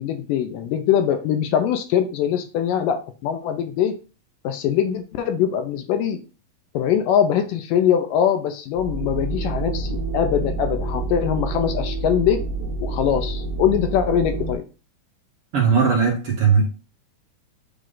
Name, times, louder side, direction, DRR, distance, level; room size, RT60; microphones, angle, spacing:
voice 1, 0.0-4.0 4.4-6.2 6.7-12.4 12.8-14.7, left 9 dB, 75° left, 7 dB, 2.2 m, -22 dB
sound 1, 8.8-14.5, right 3 dB, 75° right, 2.4 m, -28 dB
voice 2, 15.5-16.6, right 6 dB, 50° right, -2 dB, 2.0 m, -18 dB
9.4 x 3.2 x 3.9 m, 0.33 s
omnidirectional pair, 4.2 m